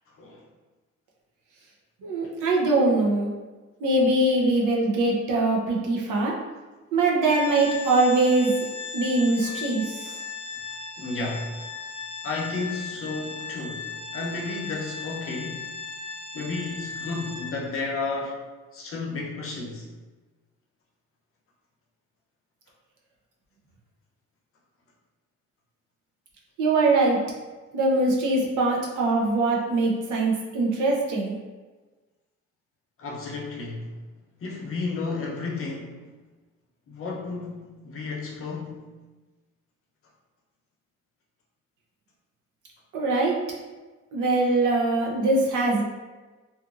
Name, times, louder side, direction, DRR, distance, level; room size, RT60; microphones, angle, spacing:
voice 1, 2.0-3.3 3.8-6.3 6.9-8.5 8.9-10.2 26.6-27.2 27.7-31.4 42.9-43.4 44.1-45.8, right 2 dB, 80° right, -2 dB, 0.7 m, -22 dB
Organ, 7.2-17.9, left 5 dB, 20° right, 0.8 m, -37 dB
voice 2, 11.0-11.5 12.2-15.7 16.3-18.4 18.7-19.9 33.0-33.9 34.4-36.0 36.9-38.9, left 3 dB, 45° left, -1 dB, 0.7 m, -32 dB
2.7 x 2.5 x 2.4 m, 1.2 s
cardioid pair, 90°, 30 cm